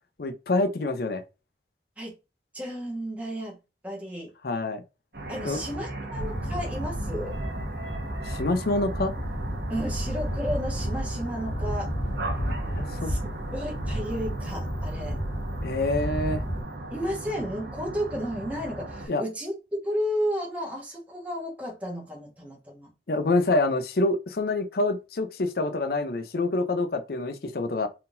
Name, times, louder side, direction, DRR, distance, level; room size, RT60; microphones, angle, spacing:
voice 1, 0.2-1.2 4.4-4.8 5.4-5.6 8.2-9.1 12.7-13.1 15.6-16.4 19.1-19.2 23.1-27.9, left 2 dB, 55° left, 0.6 m, -26 dB
voice 2, 2.5-3.6 3.8-4.3 5.3-7.3 9.7-12.0 13.0-13.2 13.5-15.2 16.9-22.9, equal, 10° right, 1.4 m, -33 dB
sound 1, 5.1-19.1, right 2 dB, 65° right, 1.3 m, -37 dB
sound 2, 6.2-16.6, equal, 75° left, 1.5 m, -32 dB
4.4 x 3.8 x 2.6 m
head